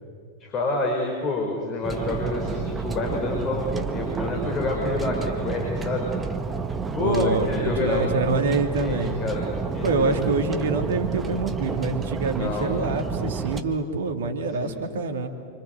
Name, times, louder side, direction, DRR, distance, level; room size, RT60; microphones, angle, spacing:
voice 1, 0.4-6.1 6.9-10.5 12.3-12.8 14.6-14.9, left 2 dB, 30° left, 1 dB, 5.4 m, -28 dB
sound 1, 1.8-13.6, right 5 dB, 15° right, 1.8 m, -30 dB
voice 2, 7.0-9.2 9.8-15.3, right 3 dB, 60° right, 6 dB, 2.6 m, -26 dB
28.0 x 26.0 x 7.9 m, 2.3 s
figure-of-eight pair, 90°, 0 cm